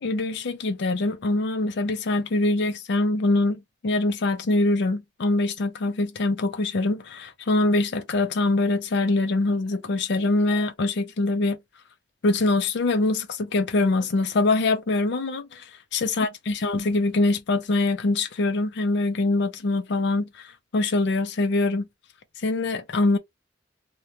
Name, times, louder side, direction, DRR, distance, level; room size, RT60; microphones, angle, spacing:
voice 1, 0.0-11.6 12.2-15.6 15.9-20.5 20.7-21.9 22.4-23.2, left 2 dB, 60° left, 0.5 m, -24 dB
2.9 x 2.2 x 2.4 m
head